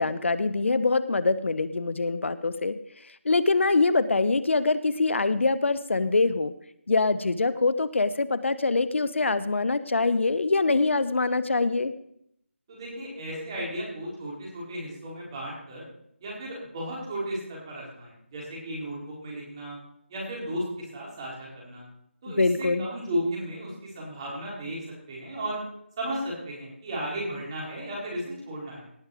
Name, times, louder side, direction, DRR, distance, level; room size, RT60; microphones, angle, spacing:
voice 1, 0.0-2.7 3.0-6.5 6.9-11.9 22.3-22.9, left 3 dB, 65° left, 14 dB, 0.7 m, -24 dB
voice 2, 12.7-15.9 16.2-19.8 20.1-21.8 22.2-24.8 25.1-25.6 26.0-28.8, right 1 dB, 25° right, -5 dB, 4.5 m, -34 dB
18.0 x 6.5 x 4.9 m, 0.74 s
figure-of-eight pair, 170°, 7 cm